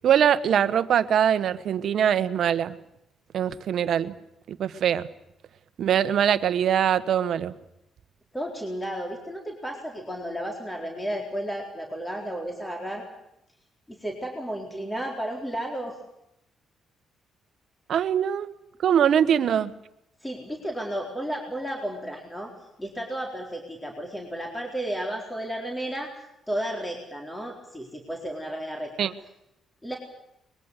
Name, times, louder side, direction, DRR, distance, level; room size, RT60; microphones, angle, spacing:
voice 1, 0.0-2.7 3.3-4.1 4.5-5.1 5.8-7.5 17.9-18.5 18.8-19.7 29.0-29.1, right 9 dB, 65° right, 13 dB, 1.3 m, -22 dB
voice 2, 8.3-13.0 13.9-16.0 20.2-22.5 22.8-26.1 26.5-29.1 29.8-30.0, right 1 dB, 10° left, 1 dB, 4.1 m, -33 dB
23.0 x 21.5 x 8.2 m, 0.81 s
cardioid pair, 90°, 0 cm